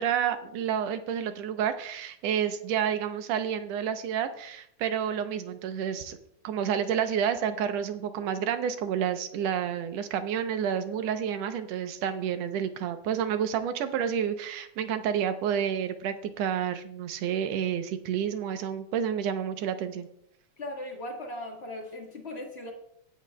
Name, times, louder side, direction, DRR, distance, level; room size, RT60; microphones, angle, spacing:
voice 1, 0.0-6.2 6.4-20.1, right 8 dB, 70° right, 9 dB, 1.8 m, -29 dB
voice 2, 20.6-22.7, left 1 dB, 40° left, 1 dB, 0.9 m, -38 dB
17.5 x 8.5 x 2.2 m, 0.69 s
omnidirectional pair, 3.4 m